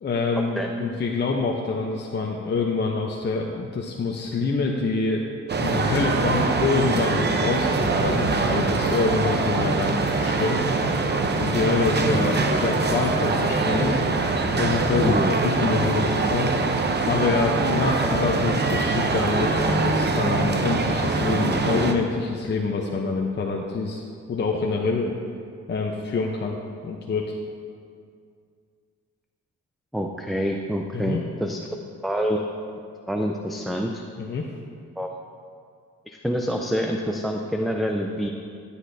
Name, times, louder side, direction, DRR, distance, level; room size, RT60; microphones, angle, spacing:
voice 1, 0.0-5.3 5.6-10.6 11.4-13.9 14.6-16.8 17.1-24.0 24.3-25.2 25.7-27.3 30.9-31.2 34.2-34.5, left 4 dB, 35° left, 0 dB, 0.8 m, -26 dB
sound 1, 5.5-21.9, right 3 dB, 35° right, 0.8 m, -23 dB
voice 2, 29.9-31.6 32.0-32.4 33.1-34.0 35.0-35.1 36.1-38.3, equal, ahead, 2 dB, 0.5 m, -26 dB
14.5 x 8.5 x 2.7 m, 2.3 s
cardioid pair, 90°, 30 cm